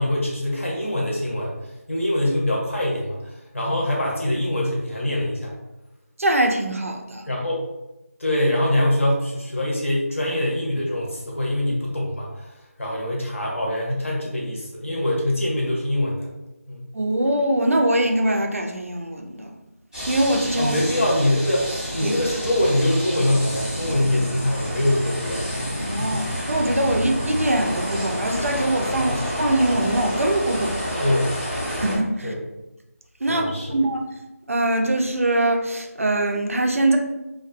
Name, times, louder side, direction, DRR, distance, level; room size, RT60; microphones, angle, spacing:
voice 1, 0.0-5.5 7.3-7.6 8.2-16.3 16.7-16.9 20.6-25.4 26.0-26.2 29.1-29.3 31.0-31.3 32.2-32.4 33.3-33.8, left 1 dB, 55° left, -3 dB, 0.8 m, -24 dB
voice 2, 6.2-7.3 16.9-19.5 20.1-20.7 22.0-22.1 25.8-30.8 31.7-32.3 33.2-33.5 33.7-34.0 34.5-37.0, right 1 dB, 60° right, 3 dB, 0.3 m, -22 dB
sound 1, 19.9-32.0, equal, 10° left, 0.7 m, -29 dB
2.3 x 2.2 x 2.5 m, 0.98 s
figure-of-eight pair, 175°, 8 cm